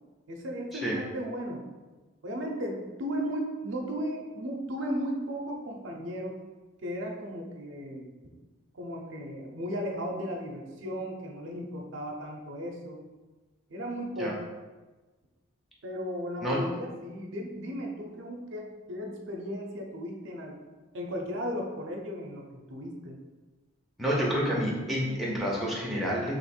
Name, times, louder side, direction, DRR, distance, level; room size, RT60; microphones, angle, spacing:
voice 1, 0.3-1.6 2.2-6.4 6.8-8.1 8.7-13.0 13.7-14.5 15.8-20.7 20.9-23.2, equal, 70° right, 1 dB, 0.6 m, -35 dB
voice 2, 24.0-26.3, equal, ahead, -5 dB, 0.6 m, -29 dB
3.0 x 2.5 x 4.2 m, 1.2 s
head